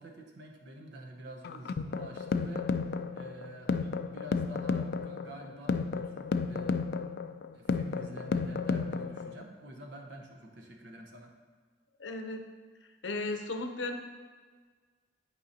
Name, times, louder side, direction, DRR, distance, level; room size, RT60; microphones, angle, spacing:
voice 1, 0.0-6.8 7.5-11.3, right 1 dB, 65° right, 2 dB, 1.0 m, -48 dB
sound 1, 1.4-9.4, left 4 dB, 60° left, 0.3 m, -32 dB
voice 2, 12.0-12.4 13.0-13.9, left 2 dB, 80° left, 5 dB, 0.7 m, -35 dB
11.5 x 4.8 x 2.8 m, 1.5 s
head